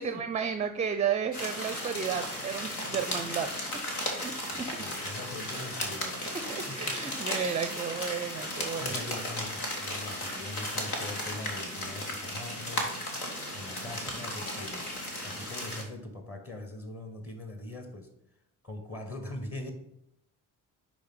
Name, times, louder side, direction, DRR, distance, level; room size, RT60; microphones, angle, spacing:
voice 1, 0.0-3.5 4.0-4.8 6.5-9.0, right 7 dB, 15° right, 9 dB, 0.4 m, -33 dB
sound 1, 1.3-15.8, left 1 dB, 85° left, 1.0 m, -35 dB
voice 2, 4.5-6.2 6.7-7.1 8.8-13.0 13.5-15.0 15.2-18.1 18.6-19.7, left 2 dB, 30° left, 6 dB, 1.4 m, -42 dB
9.9 x 3.5 x 3.8 m, 0.78 s
figure-of-eight pair, 45°, 44 cm